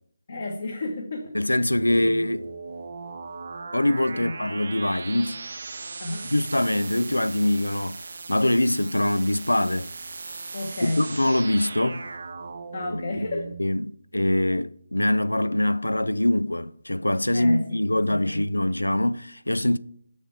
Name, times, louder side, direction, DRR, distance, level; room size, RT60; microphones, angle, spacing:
voice 1, 0.3-1.6 1.9-2.1 4.1-4.3 6.0-6.3 10.5-11.0 12.7-13.5 17.3-18.4, left 2 dB, 45° left, 1.0 m, -32 dB
voice 2, 1.3-2.4 3.7-5.4 6.3-8.0 8.3-9.9 10.8-12.1 13.3-19.8, left 1 dB, 80° left, 0.3 m, -23 dB
sound 1, 1.7-13.6, right 4 dB, 50° right, 0.6 m, -38 dB
6.9 x 6.5 x 4.4 m
figure-of-eight pair, 150°, 0 cm